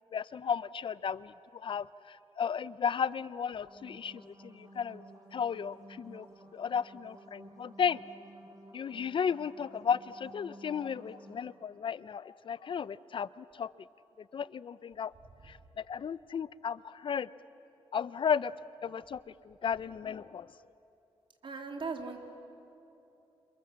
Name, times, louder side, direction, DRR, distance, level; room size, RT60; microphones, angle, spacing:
voice 1, 0.1-5.0 5.3-6.3 6.5-8.0 8.7-13.7 14.2-15.1 15.4-17.3 17.9-18.5 18.8-20.5, left 7 dB, 55° left, 18 dB, 0.5 m, -34 dB
sound 1, 3.5-11.5, right 1 dB, 35° right, 6.4 m, -54 dB
voice 2, 21.4-22.2, right 4 dB, 55° right, 3 dB, 3.1 m, -38 dB
29.0 x 27.0 x 7.4 m, 2.9 s
cardioid pair, 95°, 10 cm